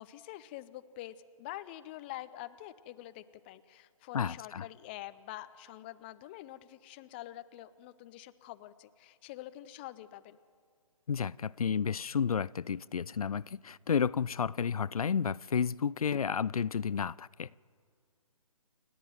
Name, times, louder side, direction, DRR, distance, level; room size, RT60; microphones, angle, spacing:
voice 1, 0.0-10.4, left 15 dB, 20° left, 0.5 m, -46 dB
voice 2, 4.1-4.7 11.1-17.6, left 7 dB, 85° left, 0.4 m, -31 dB
29.0 x 10.0 x 9.1 m
figure-of-eight pair, 140°, 18 cm